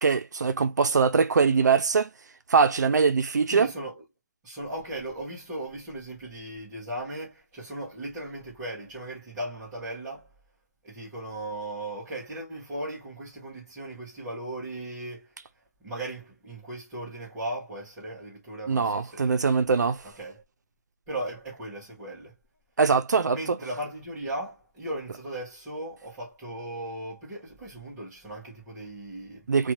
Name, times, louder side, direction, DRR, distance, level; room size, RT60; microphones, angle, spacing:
voice 1, 0.0-2.1 2.5-3.7 18.7-20.0 22.8-23.6 29.5-29.7, right 5 dB, 85° right, 0.5 m, -22 dB
voice 2, 3.5-4.0 4.4-10.3 10.8-15.3 15.8-19.4 20.2-20.4 21.1-22.3 23.3-29.5, right 1 dB, 5° right, 0.7 m, -37 dB
2.6 x 2.3 x 2.9 m
hypercardioid pair, 180°, 9 cm